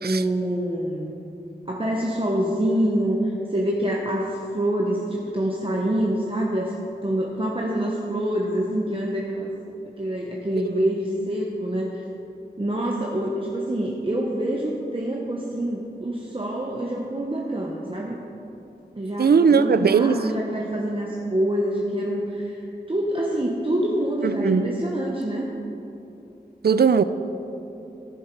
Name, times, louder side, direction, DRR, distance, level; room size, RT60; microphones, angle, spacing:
voice 1, 0.0-1.1 1.7-6.7 7.0-9.5 10.0-12.0 12.6-18.2 19.0-25.5, right 1 dB, 30° right, -2 dB, 1.0 m, -26 dB
voice 2, 19.2-20.2 24.2-24.6 26.6-27.0, right 6 dB, 65° right, 13 dB, 0.4 m, -19 dB
14.0 x 7.2 x 4.6 m, 2.9 s
wide cardioid pair, 60°, 18 cm